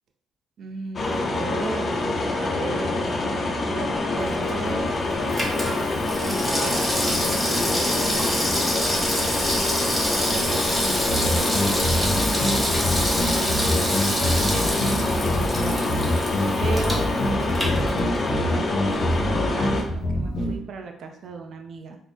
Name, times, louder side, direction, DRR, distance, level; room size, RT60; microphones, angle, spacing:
voice 1, 0.6-5.0 6.2-9.5 10.3-16.2 16.6-22.0, right 4 dB, 60° right, 4 dB, 0.5 m, -36 dB
sound 1, 1.0-19.8, left 2 dB, 40° left, 0.6 m, -26 dB
Water tap faucet / Sink (filling or washing), 4.2-18.5 18.8-18.9, equal, ahead, 1.0 m, -28 dB
sound 2, 11.1-20.6, equal, 75° left, 0.9 m, -26 dB
3.7 x 2.1 x 3.8 m, 0.69 s
cardioid pair, 90°, 0 cm